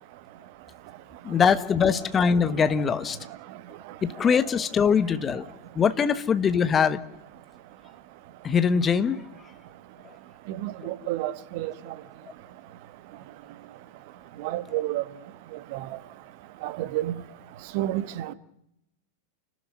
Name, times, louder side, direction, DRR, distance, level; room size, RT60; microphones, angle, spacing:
voice 1, 1.2-3.2 4.0-5.4 5.7-7.0 8.4-9.2, left 6 dB, 20° left, 1.3 m, -22 dB
voice 2, 10.5-11.7 14.4-15.0 15.7-15.8 16.6-17.1 17.7-18.3, right 14 dB, 45° right, 1.4 m, -29 dB
29.5 x 13.0 x 9.5 m
figure-of-eight pair, 90°, 0 cm